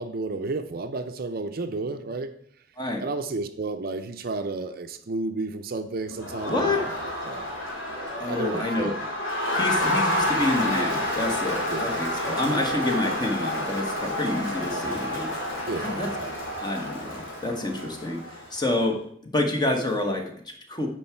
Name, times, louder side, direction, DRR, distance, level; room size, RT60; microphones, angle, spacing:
voice 1, 0.0-2.3 3.0-7.0 7.3-7.5 7.8-9.0 11.6-12.4 15.7-16.3, right 3 dB, 50° right, 9 dB, 0.6 m, -32 dB
Crowd, 6.1-18.6, left 1 dB, 75° left, 2.5 m, -29 dB
voice 2, 6.5-6.8 8.2-8.9 9.5-15.3 15.8-16.1 16.6-20.9, left 2 dB, 20° left, 4 dB, 1.1 m, -28 dB
9.7 x 4.6 x 4.5 m, 0.64 s
head